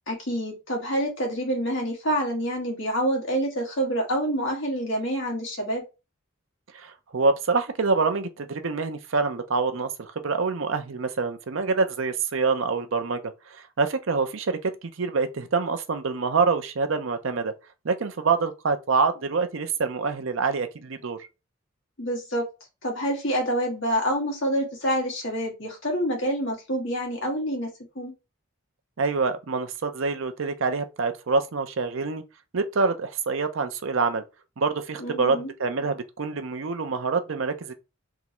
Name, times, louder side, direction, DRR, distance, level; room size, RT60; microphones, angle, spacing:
voice 1, 0.1-5.8 22.0-22.5 22.8-27.7 28.0-28.1 35.0-35.5, equal, 60° left, 1.8 m, -27 dB
voice 2, 6.7-13.2 13.5-17.5 17.8-21.2 29.0-32.2 32.5-34.2 34.6-37.7, right 4 dB, 70° right, 0.6 m, -26 dB
3.6 x 3.1 x 2.9 m
head